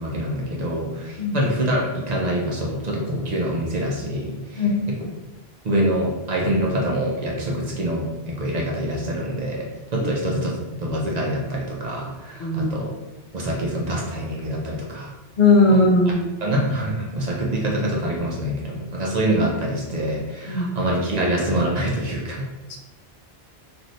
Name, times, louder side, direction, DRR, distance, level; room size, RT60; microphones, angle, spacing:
voice 1, 0.0-5.0 5.6-12.9 13.3-15.1 15.7-15.8 16.1-16.2 16.4-22.5, right 1 dB, 50° right, -2 dB, 0.6 m, -25 dB
voice 2, 12.4-12.7 15.4-16.3 20.5-20.7, left 2 dB, 55° left, 1 dB, 0.6 m, -18 dB
3.1 x 2.5 x 2.6 m, 1.1 s
omnidirectional pair, 1.0 m